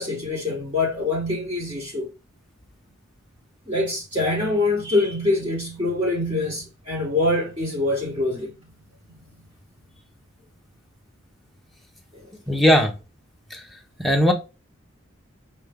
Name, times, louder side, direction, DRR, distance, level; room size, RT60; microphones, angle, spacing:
voice 1, 0.0-2.1 3.7-8.5 12.1-12.2, left 2 dB, 30° right, 1.4 m, -24 dB
voice 2, 12.5-12.9 13.5-13.6 14.0-14.3, equal, ahead, 0.8 m, -18 dB
5.6 x 2.6 x 3.5 m
head